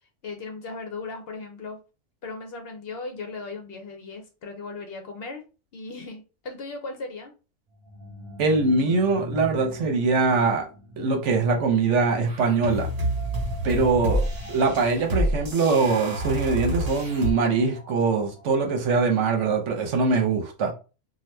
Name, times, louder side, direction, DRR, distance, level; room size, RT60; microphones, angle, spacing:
voice 1, 0.2-1.8 2.2-5.4 5.7-7.3, left 3 dB, 60° left, 0.7 m, -37 dB
sound 1, 7.7-19.5, left 1 dB, 35° right, 0.6 m, -42 dB
voice 2, 8.4-10.7 11.0-12.9 13.6-14.2 14.5-20.7, right 4 dB, 70° right, 1.0 m, -22 dB
sound 2, 12.3-17.3, right 1 dB, 50° right, 1.3 m, -28 dB
2.8 x 2.3 x 3.2 m
omnidirectional pair, 1.3 m